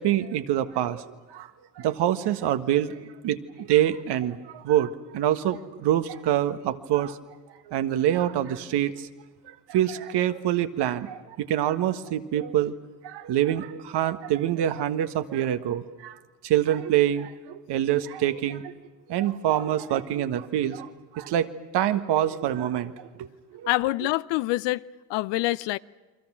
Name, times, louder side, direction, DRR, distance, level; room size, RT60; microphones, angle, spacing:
voice 1, 0.0-1.5 1.8-7.2 7.7-9.1 9.4-12.7 13.0-16.2 16.4-18.7 19.1-23.7, right 11 dB, 55° right, 1.6 m, -26 dB
voice 2, 23.7-24.8 25.1-25.8, left 19 dB, 60° left, 0.7 m, -25 dB
29.5 x 24.0 x 6.2 m
hypercardioid pair, 65°, 47 cm